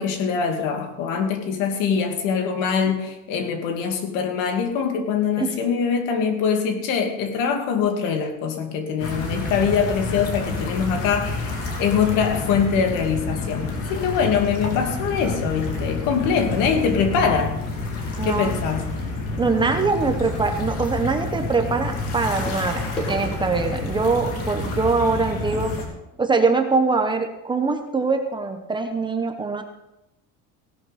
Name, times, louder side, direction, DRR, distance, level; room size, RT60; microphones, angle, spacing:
voice 1, 0.0-17.6 18.2-18.9, left 6 dB, 70° left, 4 dB, 2.5 m, -23 dB
sound 1, 9.0-25.8, left 2 dB, 45° left, 2.8 m, -29 dB
voice 2, 18.2-18.5 19.4-22.8 23.1-25.7 26.2-29.6, right 4 dB, 15° right, 6 dB, 0.9 m, -23 dB
sound 2, 22.4-26.9 27.6-27.7 27.9-28.1 28.6-28.7, equal, 15° left, 2.3 m, -38 dB
17.0 x 11.5 x 4.2 m, 0.92 s
cardioid pair, 170°, 33 cm